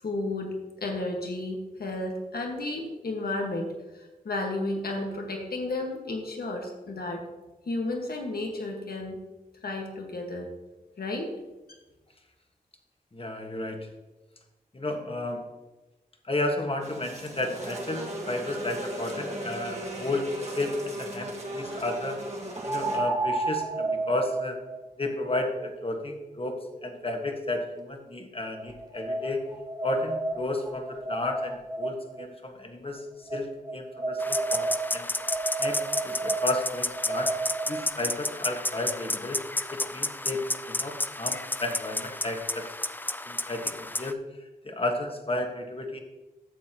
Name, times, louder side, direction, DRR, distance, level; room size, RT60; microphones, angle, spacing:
voice 1, 0.0-7.2 7.7-9.2 9.6-10.5 11.0-11.3, left 2 dB, 80° left, 2 dB, 1.6 m, -32 dB
voice 2, 13.1-13.9 14.7-15.4 16.3-20.3 20.6-22.2 22.6-24.6 25.0-26.6 26.8-29.4 29.8-33.5 33.7-35.1 35.6-37.3 37.7-39.4 39.7-40.4 40.6-42.7 43.3-44.2 44.6-46.0, left 2 dB, 35° left, 3 dB, 1.5 m, -32 dB
sound 1, 16.8-23.0, right 1 dB, 45° right, 1.9 m, -37 dB
sound 2, 20.0-20.1 22.6-27.8 28.5-32.2 33.3-37.9, right 3 dB, 25° right, 1.0 m, -32 dB
sound 3, 34.2-44.1, left 2 dB, 10° left, 0.4 m, -32 dB
12.5 x 7.3 x 2.9 m, 1.1 s
wide cardioid pair, 65°, 16 cm